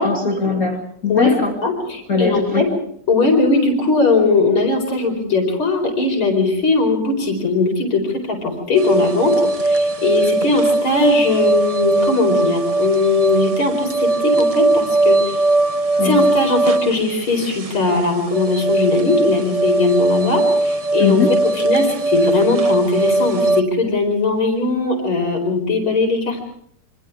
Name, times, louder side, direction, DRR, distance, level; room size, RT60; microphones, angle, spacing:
voice 1, 0.0-1.5 2.1-2.6 16.0-16.2 21.0-21.4, left 5 dB, 40° left, 1 dB, 2.9 m, -20 dB
voice 2, 1.6-2.7 3.1-8.0 8.3-9.3 9.6-15.4 16.0-21.2 21.6-26.5, left 3 dB, 80° left, 3 dB, 5.5 m, -19 dB
sound 1, 8.7-23.6, right 2 dB, 65° right, 0.3 m, -19 dB
28.5 x 25.5 x 3.6 m, 0.67 s
omnidirectional pair, 2.2 m